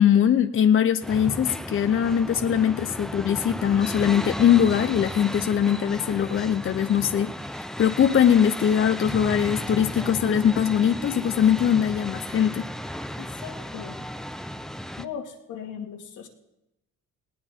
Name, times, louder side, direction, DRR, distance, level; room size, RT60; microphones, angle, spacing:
voice 1, 0.0-12.6, left 9 dB, 45° left, 9 dB, 0.7 m, -21 dB
sound 1, 1.0-15.0, equal, ahead, 0.6 m, -34 dB
voice 2, 13.2-14.0 15.0-16.3, left 8 dB, 85° left, 1 dB, 2.2 m, -38 dB
19.5 x 18.0 x 3.7 m, 0.89 s
cardioid pair, 90°, 30 cm